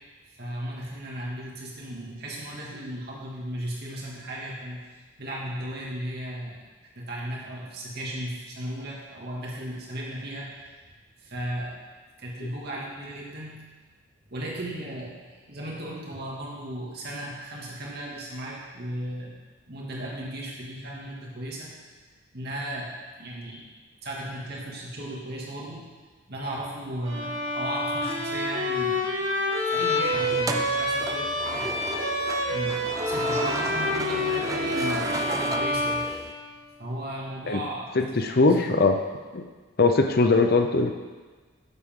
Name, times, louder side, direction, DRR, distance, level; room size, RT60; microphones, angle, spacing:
voice 1, 0.4-6.6 7.0-10.6 11.2-11.8 12.2-13.6 14.3-19.3 19.7-21.7 22.3-22.9 23.2-23.7 24.0-25.9 26.3-29.4 29.7-31.7 32.5-36.0 36.8-38.6, right 1 dB, 50° right, -4 dB, 2.4 m, -36 dB
Bowed string instrument, 27.0-36.8, left 1 dB, 75° right, 2.8 m, -28 dB
sound 1, 30.3-36.3, right 2 dB, 15° right, 0.5 m, -34 dB
voice 2, 38.0-39.0 39.3-39.4 39.8-40.9, left 3 dB, 50° left, 5 dB, 0.7 m, -21 dB
13.0 x 8.3 x 3.8 m, 1.4 s
head